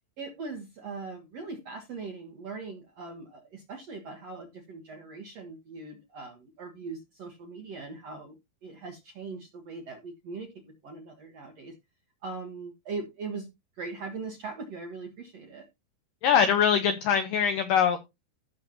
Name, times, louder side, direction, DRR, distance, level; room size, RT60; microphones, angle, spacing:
voice 1, 0.2-8.3 8.6-10.5 10.8-11.7 12.2-13.5 13.8-15.6, right 4 dB, 65° right, 4 dB, 1.7 m, -40 dB
voice 2, 16.2-18.0, left 7 dB, 85° left, 9 dB, 1.9 m, -23 dB
15.5 x 6.5 x 2.8 m, 0.23 s
omnidirectional pair, 4.9 m